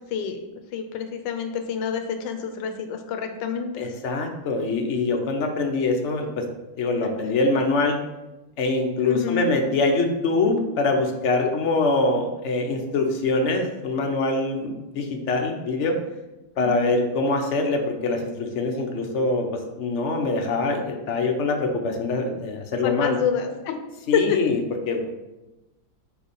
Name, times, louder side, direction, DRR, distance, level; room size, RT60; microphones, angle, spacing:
voice 1, 0.7-3.9 7.0-7.2 9.0-9.5 11.4-11.5 16.6-17.0 22.8-23.8 24.1-24.4, left 7 dB, 75° left, 6 dB, 1.4 m, -27 dB
voice 2, 3.8-6.4 6.8-7.9 8.6-15.9 16.6-19.5 19.8-23.2 24.1-24.6 24.9-25.0, left 3 dB, 50° left, 3 dB, 0.9 m, -24 dB
5.2 x 4.7 x 5.3 m, 1.0 s
omnidirectional pair, 2.1 m